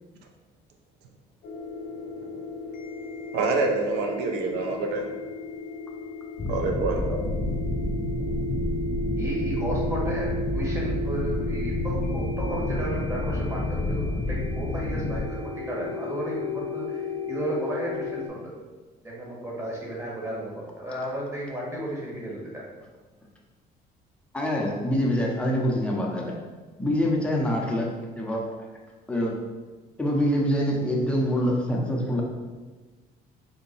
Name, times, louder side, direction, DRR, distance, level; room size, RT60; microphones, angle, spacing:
sound 1, 1.4-18.3, left 1 dB, 65° left, 0.7 m, -35 dB
voice 1, 3.3-5.1 6.5-7.2, right 3 dB, 85° right, 2 dB, 0.5 m, -26 dB
sound 2, 6.4-15.2, left 2 dB, 25° left, 0.3 m, -29 dB
voice 2, 9.2-18.5 19.0-22.6, right 1 dB, 15° right, -5 dB, 1.2 m, -33 dB
voice 3, 24.3-26.4 26.8-27.9 28.2-28.4 29.1-29.3 30.0-32.2, equal, 5° left, -3 dB, 0.7 m, -25 dB
3.9 x 2.2 x 3.9 m, 1.3 s
cardioid pair, 110°, 17 cm